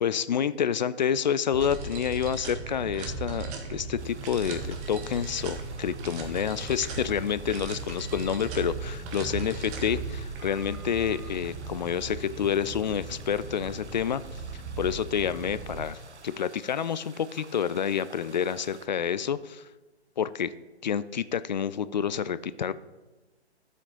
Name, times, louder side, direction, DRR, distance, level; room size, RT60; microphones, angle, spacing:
voice 1, 0.0-14.2 14.5-16.0 16.2-19.6 20.2-20.5 20.8-22.7, left 8 dB, 40° left, 16 dB, 0.4 m, -28 dB
sound 1, 1.5-15.9, right 4 dB, 20° right, 1.2 m, -37 dB
sound 2, 4.0-18.9, right 4 dB, 80° right, 1.0 m, -52 dB
sound 3, 6.5-12.1, left 1 dB, 75° left, 2.2 m, -55 dB
12.5 x 7.5 x 3.9 m, 1.2 s
figure-of-eight pair, 130°, 34 cm